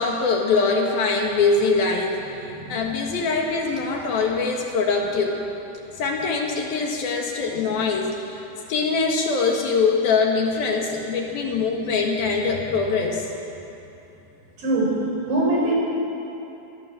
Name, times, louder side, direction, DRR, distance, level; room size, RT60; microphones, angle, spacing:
voice 1, 0.0-2.4 2.7-5.4 6.0-8.4 8.7-13.3, left 4 dB, 65° left, 1 dB, 3.4 m, -23 dB
voice 2, 2.5-2.8 7.6-7.7 14.6-15.0 15.3-15.7, right 2 dB, 90° right, -2 dB, 7.8 m, -23 dB
24.0 x 20.5 x 7.7 m, 2.9 s
omnidirectional pair, 5.0 m